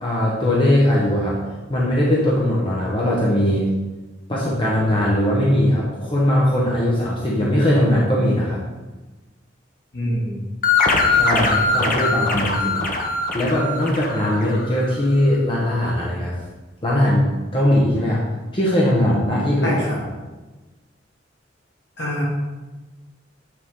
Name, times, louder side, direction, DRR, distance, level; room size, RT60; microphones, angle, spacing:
voice 1, 0.0-1.4 1.7-3.7 4.3-8.6 11.1-12.9 13.3-16.4 16.8-18.2 18.5-19.7, left 1 dB, 25° left, -5 dB, 1.1 m, -20 dB
voice 2, 9.9-10.4 19.6-20.0 22.0-22.2, equal, 65° left, -4 dB, 2.2 m, -24 dB
sound 1, 10.6-15.0, left 3 dB, 45° left, 0.9 m, -21 dB
8.7 x 4.7 x 3.7 m, 1.2 s
head